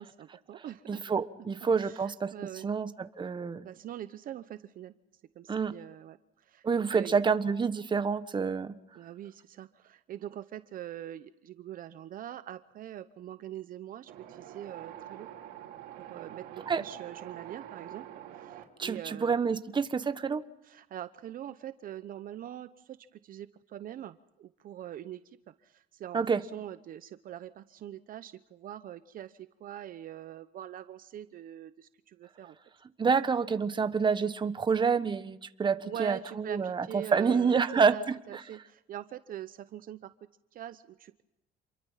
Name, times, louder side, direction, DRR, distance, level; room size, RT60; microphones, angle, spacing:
voice 1, 0.0-1.0 1.8-2.7 3.6-4.9 5.3-6.6 6.9-7.2 8.9-15.3 16.0-18.1 18.3-19.6 20.6-25.4 25.6-32.6 35.8-40.1 40.5-41.2, right 11 dB, 55° right, 12 dB, 0.8 m, -43 dB
voice 2, 0.9-2.3 2.6-3.6 5.5-5.7 6.6-8.7 16.7-16.8 18.8-20.4 26.1-26.4 33.0-38.2, right 5 dB, 30° right, 11 dB, 1.2 m, -28 dB
Wind, 14.1-18.6, right 11 dB, 85° right, 3.3 m, -46 dB
28.5 x 22.5 x 5.8 m, 0.88 s
cardioid pair, 110°, 17 cm